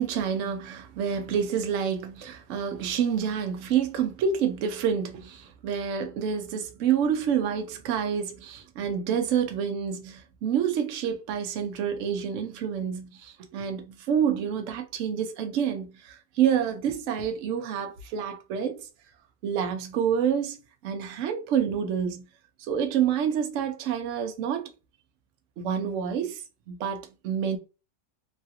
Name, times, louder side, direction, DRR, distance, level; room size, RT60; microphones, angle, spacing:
voice 1, 0.0-18.9 19.4-20.6 20.8-22.2 22.7-24.7 25.6-27.6, right 8 dB, 75° right, 0.7 m, -28 dB
3.0 x 2.3 x 2.8 m
omnidirectional pair, 2.0 m